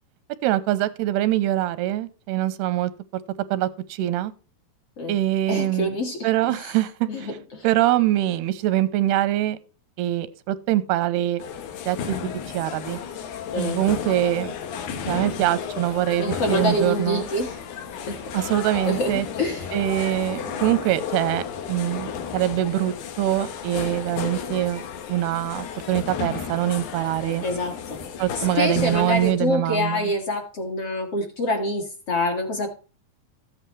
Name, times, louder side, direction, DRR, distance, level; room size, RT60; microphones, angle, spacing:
voice 1, 0.4-2.9 3.5-4.3 5.1-6.0 6.2-7.3 7.6-9.6 10.0-11.4 11.9-12.2 12.5-13.0 13.5-14.5 15.1-17.2 18.3-19.3 19.7-24.8 25.1-27.4 28.2-30.1, right 14 dB, 85° right, 2.8 m, -24 dB
voice 2, 5.5-6.7 7.1-7.7 13.5-13.8 16.2-17.6 18.1-18.2 18.8-19.7 27.4-28.1 28.3-32.7, left 1 dB, 45° left, 2.3 m, -26 dB
sound 1, 11.4-29.3, left 7 dB, 80° left, 3.5 m, -33 dB
14.0 x 8.9 x 3.2 m
omnidirectional pair, 4.6 m